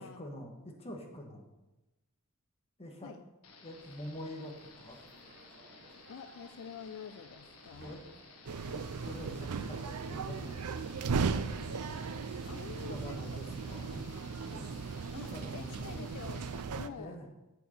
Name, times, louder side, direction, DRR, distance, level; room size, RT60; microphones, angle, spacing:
voice 1, 0.0-1.4 2.8-3.1 3.6-5.0 7.7-8.0 8.7-11.0 12.8-14.0 14.5-14.8 15.3-16.1 17.0-17.3, equal, 25° left, 2 dB, 1.5 m, -46 dB
sound 1, 3.4-16.6, left 4 dB, 85° left, 1.3 m, -56 dB
sound 2, 3.7-9.1, right 2 dB, 55° right, 1.4 m, -59 dB
voice 2, 6.1-8.0 12.4-13.2 13.7-14.0 15.1-16.5 16.8-17.2, left 6 dB, 65° left, 11 dB, 0.4 m, -47 dB
sound 3, 8.5-16.9, right 5 dB, 85° right, 0.5 m, -37 dB
8.0 x 6.5 x 6.6 m, 1.0 s
head